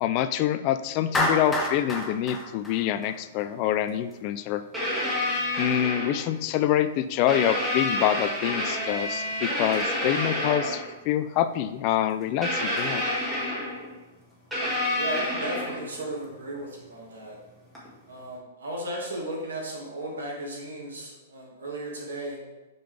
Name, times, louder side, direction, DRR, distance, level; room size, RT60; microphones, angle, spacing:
voice 1, 0.0-4.6 5.6-13.0, left 11 dB, 40° left, 12 dB, 0.4 m, -26 dB
Clapping, 1.1-3.4, left 1 dB, 10° left, 0.9 m, -28 dB
sound 1, 1.5-1.6 2.4-2.5 4.1-4.2 4.7-6.4 7.3-10.9 12.4-13.9 14.5-16.0 17.8-17.9, left 1 dB, 5° right, 1.9 m, -29 dB
voice 2, 14.9-17.4 18.1-22.4, right 1 dB, 90° right, -2 dB, 2.1 m, -35 dB
5.7 x 5.2 x 3.4 m, 1.1 s
hypercardioid pair, 135°, 0 cm